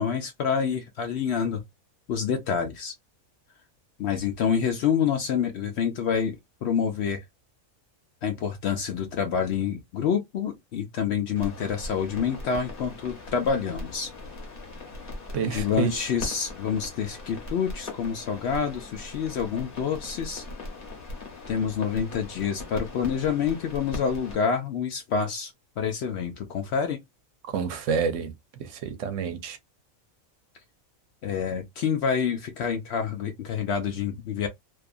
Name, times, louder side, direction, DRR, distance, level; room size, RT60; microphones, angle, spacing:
voice 1, 0.0-1.6 2.1-2.9 4.0-7.2 8.2-14.1 15.4-20.4 21.5-27.0 31.2-34.5, left 7 dB, 65° left, 0.7 m, -27 dB
sound 1, 11.4-24.4, left 2 dB, 45° left, 1.1 m, -40 dB
voice 2, 15.3-15.9 27.5-29.6, right 6 dB, 70° right, 0.9 m, -29 dB
2.6 x 2.4 x 2.3 m
omnidirectional pair, 1.4 m